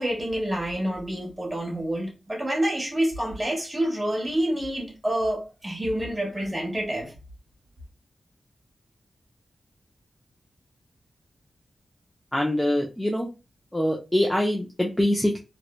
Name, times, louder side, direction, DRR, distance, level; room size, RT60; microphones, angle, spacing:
voice 1, 0.0-7.1, right 1 dB, 15° right, 0.9 m, -28 dB
voice 2, 12.3-13.3 13.7-15.4, left 1 dB, 5° left, 0.3 m, -24 dB
3.1 x 2.0 x 2.2 m
wide cardioid pair, 180°, 0 cm